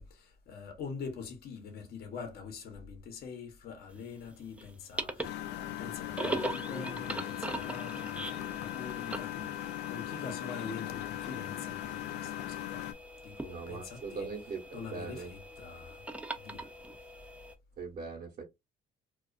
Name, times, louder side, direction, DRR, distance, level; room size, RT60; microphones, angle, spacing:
voice 1, 0.0-12.9 13.2-14.3 14.7-16.0 16.3-16.7, left 5 dB, 65° left, 0.9 m, -45 dB
sound 1, 4.0-17.5, right 2 dB, 10° right, 0.4 m, -41 dB
Engine, 5.2-12.9, left 13 dB, 85° left, 0.4 m, -39 dB
voice 2, 13.4-15.3 17.8-18.4, right 4 dB, 50° right, 0.9 m, -41 dB
2.4 x 2.4 x 2.4 m
cardioid pair, 110°, 17 cm